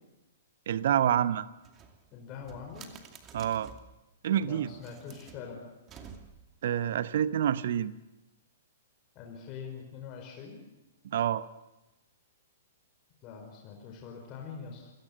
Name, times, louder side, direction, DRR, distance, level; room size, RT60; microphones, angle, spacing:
voice 1, 0.7-1.5 3.3-3.7 4.2-4.7 6.6-7.9 11.0-11.5, right 10 dB, 55° right, 15 dB, 1.0 m, -27 dB
sound 1, 1.6-4.0 4.6-6.6, right 6 dB, 25° right, 2.5 m, -51 dB
voice 2, 2.1-2.9 4.3-5.6 9.1-10.6 13.2-14.9, left 6 dB, 30° left, 1 dB, 5.0 m, -44 dB
28.0 x 17.5 x 8.1 m, 1.0 s
figure-of-eight pair, 110°, 0 cm